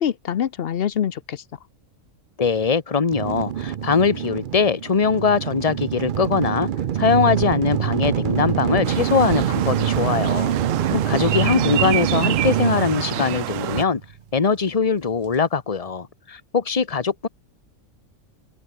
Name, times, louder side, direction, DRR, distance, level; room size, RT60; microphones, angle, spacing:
voice 1, 0.0-1.4 10.9-11.7, left 9 dB, 55° left, 0.8 m, -26 dB
voice 2, 2.4-6.7 6.9-14.0 14.3-17.3, left 5 dB, 30° left, 1.3 m, -21 dB
sound 1, 3.1-14.1, right 9 dB, 55° right, 0.6 m, -25 dB
sound 2, 8.8-13.8, right 14 dB, 75° right, 1.0 m, -28 dB
omnidirectional pair, 1.4 m